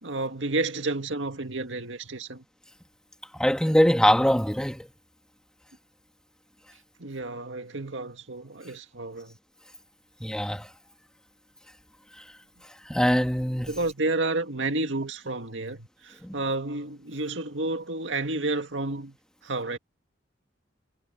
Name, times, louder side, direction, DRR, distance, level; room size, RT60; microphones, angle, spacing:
voice 1, 0.0-2.4 7.0-9.4 13.7-19.2 19.4-19.8, right 2 dB, 75° right, 2.0 m, -31 dB
voice 2, 3.3-4.9 10.2-10.7 12.9-13.7 16.2-16.4, equal, 5° left, 2.1 m, -23 dB
head